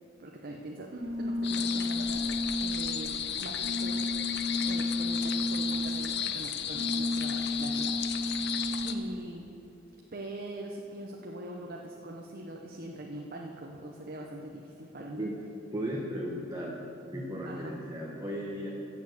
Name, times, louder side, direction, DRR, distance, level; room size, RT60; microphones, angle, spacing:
voice 1, 0.2-2.3 2.6-4.0 4.6-8.4 8.8-9.5 10.1-15.3 17.5-17.7, right 1 dB, 50° right, 0 dB, 1.0 m, -42 dB
sound 1, 1.0-9.2, left 1 dB, 85° right, 2.5 m, -33 dB
sound 2, 1.4-8.9, left 8 dB, 60° left, 0.7 m, -34 dB
voice 2, 15.7-16.8 17.1-18.7, equal, 20° right, -3 dB, 1.3 m, -35 dB
15.0 x 7.4 x 7.9 m, 3.0 s
head